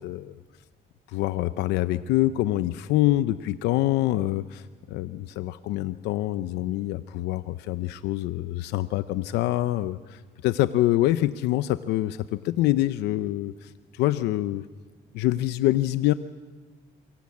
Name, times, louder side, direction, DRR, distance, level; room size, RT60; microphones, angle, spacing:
voice 1, 0.0-0.3 1.1-14.6 15.1-16.1, left 15 dB, 90° left, 13 dB, 0.8 m, -25 dB
27.5 x 23.5 x 8.6 m, 1.4 s
cardioid pair, 110°, 17 cm